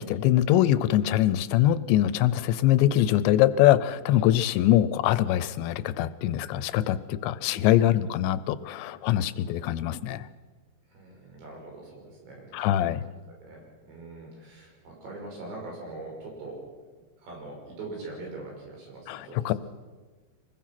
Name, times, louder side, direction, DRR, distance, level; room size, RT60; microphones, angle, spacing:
voice 1, 0.0-10.3 12.5-13.0 19.1-19.5, left 13 dB, 90° left, 15 dB, 3.0 m, -23 dB
voice 2, 7.4-8.1 10.9-13.0 13.3-16.6 17.2-19.6, right 2 dB, 80° right, -1 dB, 7.8 m, -42 dB
24.5 x 20.5 x 6.0 m, 1.3 s
omnidirectional pair, 5.0 m